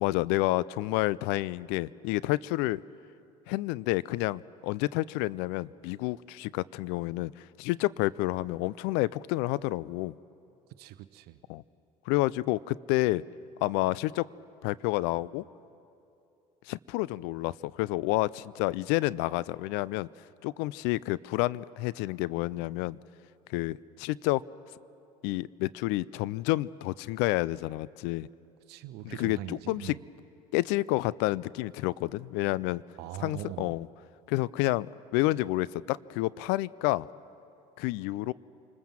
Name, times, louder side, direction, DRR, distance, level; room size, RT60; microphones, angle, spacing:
voice 1, 0.0-2.8 3.5-10.1 11.5-11.6 12.1-13.2 13.6-14.3 14.6-15.4 16.7-20.1 20.4-23.0 23.5-24.4 25.2-28.3 29.0-29.9 30.5-32.8 33.2-33.9 34.3-37.1 37.8-38.3, left 19 dB, 70° left, 21 dB, 0.5 m, -29 dB
voice 2, 10.8-11.4 28.7-30.0 32.9-33.8, right 14 dB, 65° right, 11 dB, 0.9 m, -41 dB
27.0 x 20.0 x 7.4 m, 2.7 s
hypercardioid pair, 75°, 18 cm